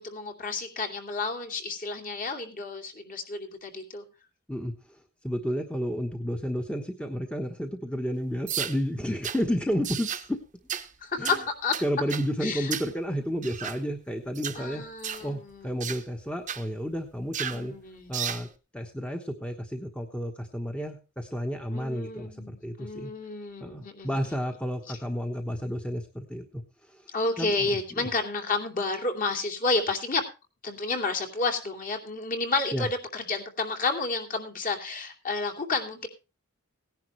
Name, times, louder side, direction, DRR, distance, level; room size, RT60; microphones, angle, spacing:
voice 1, 0.0-4.0 11.0-11.7 12.4-12.7 14.5-15.9 17.5-18.1 21.7-24.2 27.1-30.2 30.6-36.1, left 3 dB, 40° left, 4 dB, 2.7 m, -31 dB
voice 2, 4.5-5.0 5.2-10.4 11.2-11.4 11.8-14.8 15.2-17.7 18.1-18.5 18.7-23.1 23.6-27.0 27.4-27.7 28.0-28.1 32.7-32.9, equal, 5° left, 4 dB, 1.2 m, -31 dB
sound 1, 8.5-8.8 9.2-9.4 9.8-10.3 10.7-10.9 11.2-11.4 11.7-12.3 12.7-12.9 13.4-13.8 14.3-14.6 15.0-15.3 15.8-16.0 16.5-16.6 17.3-17.6 18.1-18.5, right 9 dB, 35° right, 1.0 m, -33 dB
18.0 x 10.5 x 3.2 m, 0.30 s
head